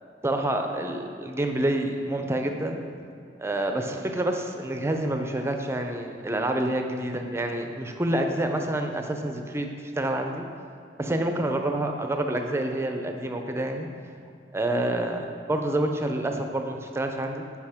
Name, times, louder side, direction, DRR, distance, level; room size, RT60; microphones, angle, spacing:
voice 1, 0.2-2.9 3.4-9.7 10.0-10.4 11.0-13.9 14.5-17.4, right 1 dB, 15° right, 4 dB, 0.5 m, -28 dB
10.5 x 4.9 x 3.5 m, 2.5 s
head